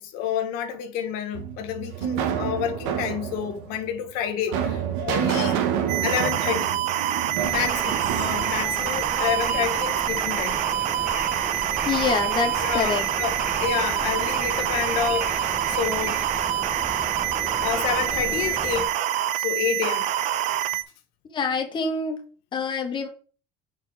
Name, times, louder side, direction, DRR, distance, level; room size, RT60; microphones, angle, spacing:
voice 1, 0.0-5.6 6.0-6.8 7.5-10.6 12.6-16.3 17.6-19.0 19.4-20.1, left 9 dB, 75° left, 1.2 m, -29 dB
sound 1, 1.3-9.5, right 8 dB, 85° right, 1.3 m, -29 dB
sound 2, 5.9-20.8, right 12 dB, 55° right, 0.6 m, -26 dB
sound 3, 7.4-18.9, right 1 dB, 10° right, 1.0 m, -35 dB
voice 2, 11.9-13.1 21.3-22.2 22.5-23.1, left 5 dB, 30° left, 1.2 m, -26 dB
6.5 x 4.7 x 4.7 m
cardioid pair, 120°, 15 cm